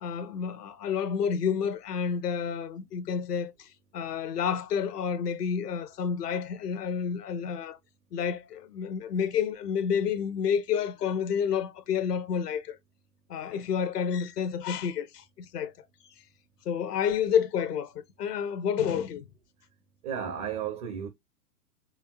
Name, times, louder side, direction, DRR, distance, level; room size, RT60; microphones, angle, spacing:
voice 1, 0.0-3.7 3.9-7.8 8.1-12.8 13.3-15.7 16.0-16.1 16.7-19.3, left 7 dB, 70° left, 1.0 m, -29 dB
voice 2, 20.0-21.1, right 8 dB, 25° right, 0.4 m, -33 dB
4.5 x 3.4 x 2.2 m
hypercardioid pair, 120°, 48 cm